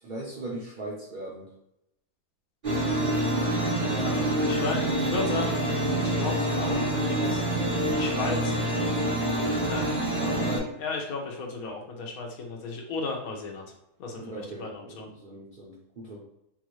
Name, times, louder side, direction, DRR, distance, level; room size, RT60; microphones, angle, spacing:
voice 1, 0.0-1.5 14.2-16.2, right 2 dB, 80° right, -4 dB, 0.4 m, -39 dB
sound 1, 2.6-10.6, right 1 dB, 30° right, 1.6 m, -26 dB
voice 2, 3.8-5.7 6.0-7.6 7.9-9.0 9.4-9.9 10.2-13.7 14.0-15.1, left 3 dB, 65° left, 1 dB, 1.1 m, -35 dB
3.9 x 2.5 x 3.0 m, 0.83 s
omnidirectional pair, 1.8 m